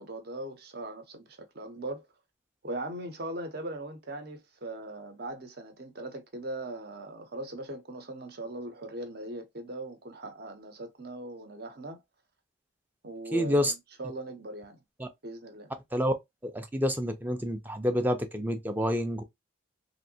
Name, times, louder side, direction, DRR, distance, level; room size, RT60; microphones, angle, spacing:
voice 1, 0.0-2.0 2.6-12.0 13.0-14.8 15.2-15.7, right 1 dB, 50° right, 0.8 m, -40 dB
voice 2, 13.3-13.7 15.0-15.1 15.9-16.1 16.4-19.2, equal, 10° right, 0.4 m, -28 dB
3.2 x 2.7 x 2.7 m
head